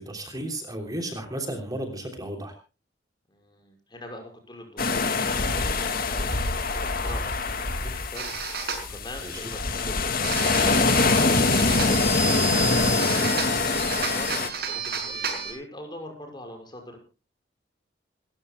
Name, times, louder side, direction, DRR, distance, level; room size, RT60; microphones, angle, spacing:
voice 1, 0.0-2.5 9.2-9.5, right 1 dB, 20° right, 4 dB, 3.2 m, -34 dB
voice 2, 3.3-17.0, left 1 dB, 25° left, 4 dB, 5.7 m, -42 dB
sound 1, 4.8-14.5, left 3 dB, 50° left, 2.1 m, -24 dB
sound 2, 8.1-8.8 10.2-15.5, right 5 dB, 60° right, 5.9 m, -31 dB
28.5 x 14.5 x 2.2 m, 0.33 s
head